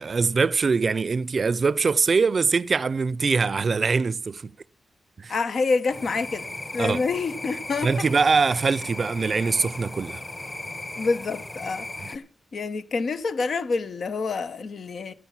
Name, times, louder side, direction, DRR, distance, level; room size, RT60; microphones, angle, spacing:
voice 1, 0.0-4.5 5.2-5.3 6.8-7.0 7.8-10.2, right 4 dB, 55° right, 0.5 m, -23 dB
voice 2, 5.3-8.1 11.0-15.1, left 4 dB, 70° left, 1.0 m, -27 dB
sound 1, 5.9-12.2, left 2 dB, 25° left, 1.1 m, -37 dB
12.5 x 9.6 x 5.8 m
cardioid pair, 50°, 0 cm